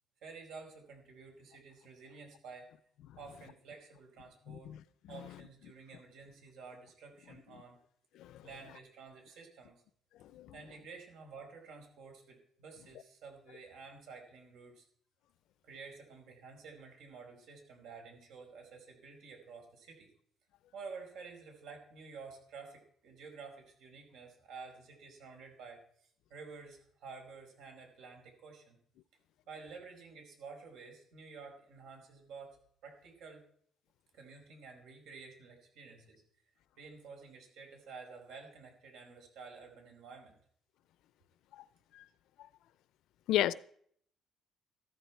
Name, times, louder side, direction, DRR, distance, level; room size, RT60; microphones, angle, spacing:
voice 1, 0.2-2.7 3.2-4.7 5.1-7.8 8.4-9.7 10.5-14.8 15.6-20.1 20.7-28.8 29.5-32.6 32.8-33.4 34.1-36.2 36.8-40.3, right 4 dB, 85° right, 4.8 m, -51 dB
voice 2, 4.5-4.8 5.1-5.4 8.1-8.5 10.2-10.6 41.5-41.6 41.9-42.0 43.3-43.5, left 13 dB, 80° left, 0.6 m, -34 dB
14.0 x 13.5 x 4.6 m
cardioid pair, 155°, 0 cm